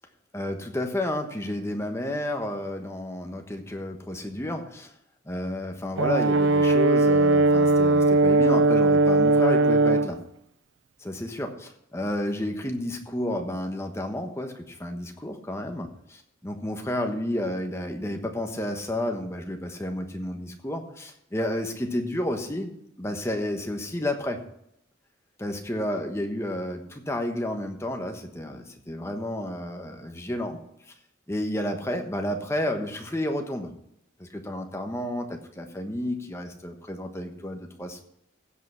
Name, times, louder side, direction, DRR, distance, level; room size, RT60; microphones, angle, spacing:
voice 1, 0.3-4.9 5.2-10.2 11.0-22.7 23.0-24.4 25.4-30.6 30.9-31.0 31.3-33.7 34.2-38.0, left 1 dB, 15° left, 4 dB, 1.2 m, -31 dB
Brass instrument, 6.0-10.1, right 2 dB, 90° right, 0.5 m, -19 dB
15.5 x 5.6 x 5.7 m, 0.76 s
head